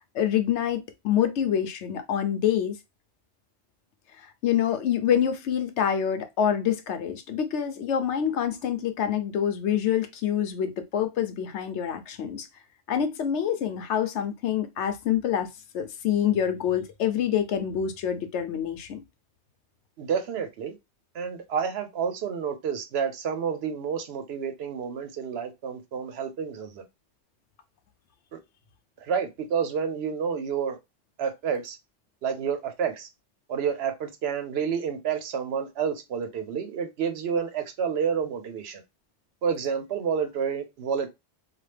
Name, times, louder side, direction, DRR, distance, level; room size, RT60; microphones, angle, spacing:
voice 1, 0.1-2.8 4.2-12.5 12.9-19.0, left 9 dB, 90° left, 0.9 m, -26 dB
voice 2, 20.0-20.7 21.1-26.8 28.3-28.4 29.0-30.8 31.2-31.8 32.2-33.1 33.5-38.8 39.4-41.1, right 7 dB, 70° right, 0.8 m, -29 dB
2.9 x 2.3 x 3.2 m
omnidirectional pair, 1.2 m